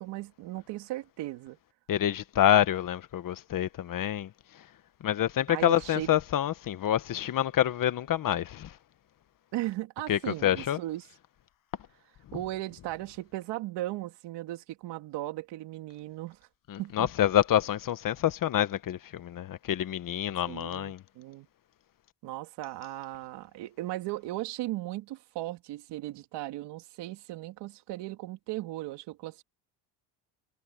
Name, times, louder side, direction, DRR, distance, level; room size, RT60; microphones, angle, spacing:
voice 1, 0.0-1.6 5.5-6.1 9.5-11.0 12.3-16.4 16.8-17.1 20.5-21.5 22.2-29.4, right 16 dB, 75° right, 2.8 m, -37 dB
voice 2, 1.9-4.7 5.0-8.8 10.1-10.8 16.7-21.0, left 11 dB, 50° left, 1.4 m, -27 dB
cardioid pair, 95°, 42 cm